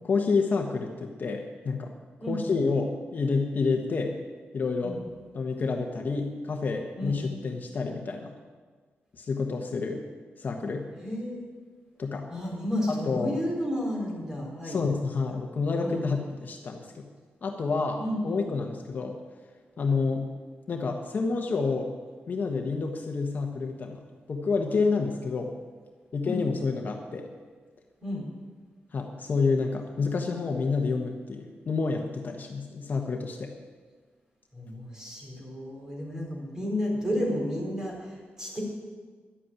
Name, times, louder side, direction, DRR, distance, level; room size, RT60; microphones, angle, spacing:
voice 1, 0.0-1.9 2.3-4.2 4.5-5.0 5.3-8.3 9.2-10.0 10.4-10.9 12.0-12.3 12.9-13.4 14.6-17.1 17.4-19.2 19.8-20.3 20.7-21.9 22.3-24.0 24.3-25.5 26.1-27.3 28.9-33.5, left 4 dB, 45° left, 3 dB, 1.1 m, -29 dB
voice 2, 11.0-11.5 12.3-14.8 15.8-16.0 18.0-18.4 26.2-26.4 28.0-28.3 34.5-38.6, left 1 dB, 15° right, -2 dB, 4.0 m, -32 dB
11.0 x 8.5 x 9.0 m, 1.5 s
wide cardioid pair, 135°, 4 cm